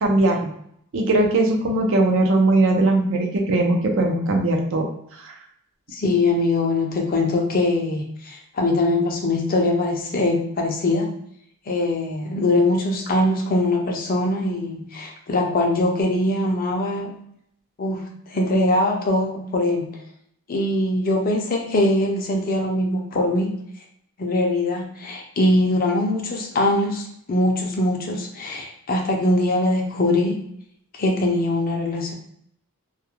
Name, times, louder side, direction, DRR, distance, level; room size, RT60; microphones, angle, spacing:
voice 1, 0.0-0.5 0.9-4.9, right 2 dB, 60° right, 2 dB, 0.5 m, -19 dB
voice 2, 5.9-11.1 11.7-17.1 17.8-18.0 18.3-19.9 20.5-23.5 24.2-30.4 30.9-32.1, left 2 dB, 40° left, 1 dB, 0.4 m, -22 dB
2.3 x 2.1 x 2.9 m, 0.70 s
head